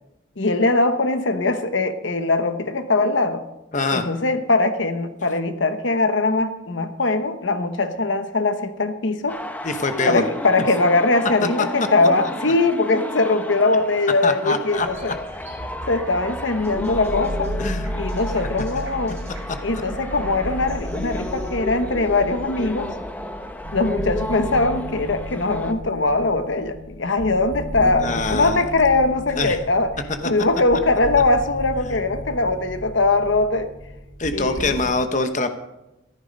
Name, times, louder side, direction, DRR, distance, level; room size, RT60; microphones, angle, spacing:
voice 1, 0.4-3.4 3.9-9.4 10.1-15.2 15.9-17.5 17.9-19.2 19.6-22.9 23.7-29.9 30.2-33.7 34.3-34.7, left 3 dB, 70° left, 9 dB, 1.1 m, -21 dB
voice 2, 3.7-4.1 9.6-10.3 14.2-14.9 17.6-17.9 27.8-28.6 29.4-29.6 34.2-35.5, left 3 dB, 40° left, 7 dB, 1.0 m, -24 dB
sound 1, 9.3-25.7, left 1 dB, 10° left, 0.8 m, -33 dB
sound 2, 14.7-23.0, right 1 dB, 15° right, 4.0 m, -44 dB
sound 3, 15.4-34.8, equal, 60° right, 2.0 m, -34 dB
14.5 x 12.5 x 5.3 m, 0.94 s
head